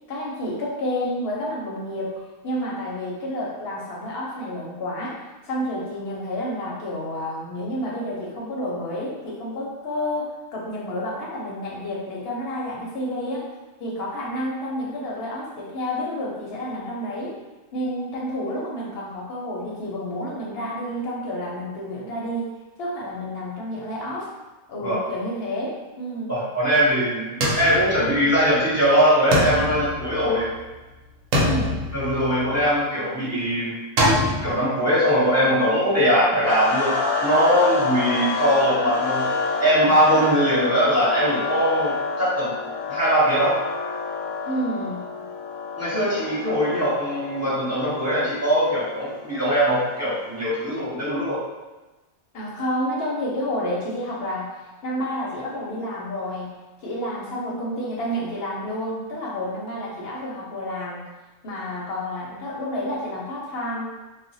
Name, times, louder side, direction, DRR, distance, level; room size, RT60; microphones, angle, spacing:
voice 1, 0.1-5.2 5.4-13.5 13.8-17.4 17.7-22.5 22.8-24.3 24.7-26.4 31.3-32.0 44.5-45.1 46.0-46.1 52.3-54.6 54.8-56.5 56.8-61.0 61.4-63.9, equal, 55° left, -4 dB, 0.7 m, -30 dB
voice 2, 26.3-30.5 31.9-33.8 34.4-39.3 39.6-42.5 42.9-43.6 45.8-51.4, equal, 20° right, -9 dB, 0.4 m, -21 dB
sound 1, 27.4-28.6 29.3-30.7 31.3-32.7 34.0-34.5, equal, 70° right, 1.0 m, -24 dB
sound 2, 36.4-50.5, left 4 dB, 85° left, 1.0 m, -28 dB
2.4 x 2.1 x 3.9 m, 1.1 s
omnidirectional pair, 1.5 m